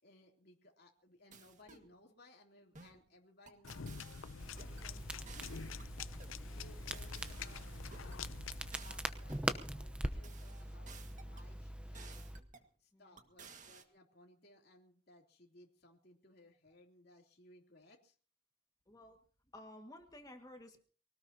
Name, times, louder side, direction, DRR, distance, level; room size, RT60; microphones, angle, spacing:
voice 1, 0.0-4.0 4.5-5.7 6.3-8.3 8.8-12.2 12.8-18.1, left 1 dB, 50° left, 0 dB, 3.2 m, -63 dB
sound 1, 1.3-1.9 2.7-3.0 3.5-4.9 5.3-6.4 6.9-8.2 8.7-9.5 10.0-11.5 11.9-12.7 13.2-13.8, right 5 dB, 40° right, 1.9 m, -57 dB
sound 2, 3.6-8.7, left 6 dB, 85° left, 0.7 m, -47 dB
Crackle, 4.4-12.4, right 1 dB, 5° right, 0.9 m, -43 dB
voice 2, 18.9-19.2 19.5-20.8, left 1 dB, 20° left, 4 dB, 1.9 m, -53 dB
24.0 x 18.5 x 2.9 m, 0.41 s
head